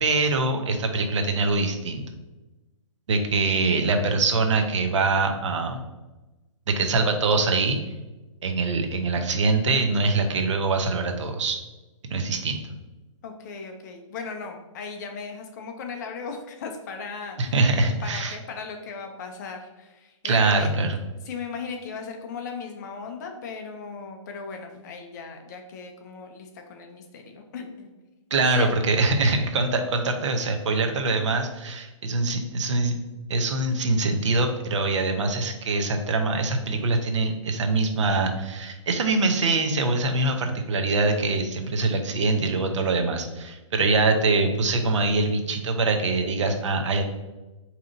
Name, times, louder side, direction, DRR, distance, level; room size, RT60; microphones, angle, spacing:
voice 1, 0.0-2.0 3.1-5.8 6.7-7.8 8.4-11.6 12.0-12.6 17.4-18.4 20.2-21.0 28.3-33.0 33.3-47.0, right 3 dB, 65° right, 5 dB, 0.6 m, -23 dB
voice 2, 13.2-17.6 18.0-20.7 21.3-27.9 28.4-28.7, left 5 dB, 35° left, 4 dB, 0.5 m, -37 dB
4.9 x 2.8 x 2.5 m, 1.1 s
hypercardioid pair, 150°, 17 cm